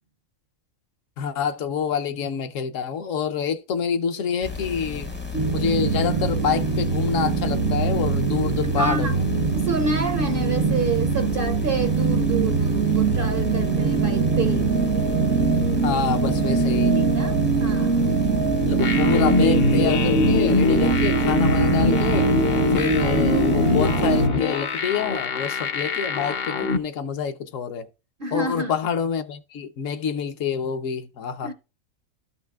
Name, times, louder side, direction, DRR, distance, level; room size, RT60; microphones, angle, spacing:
voice 1, 1.2-5.1 5.5-9.2 15.7-17.0 18.5-22.3 22.7-27.9 28.3-31.5, left 7 dB, 70° left, 1.1 m, -27 dB
sound 1, 4.4-24.3, left 4 dB, 15° left, 0.4 m, -34 dB
sound 2, 5.3-24.3, right 4 dB, 85° right, 1.8 m, -22 dB
voice 2, 8.6-9.2 9.5-14.8 16.9-18.1 28.2-28.7 31.4-31.5, right 4 dB, 55° right, 0.6 m, -28 dB
sound 3, 18.8-26.8, left 4 dB, 55° left, 0.8 m, -23 dB
13.0 x 5.7 x 2.3 m
omnidirectional pair, 1.4 m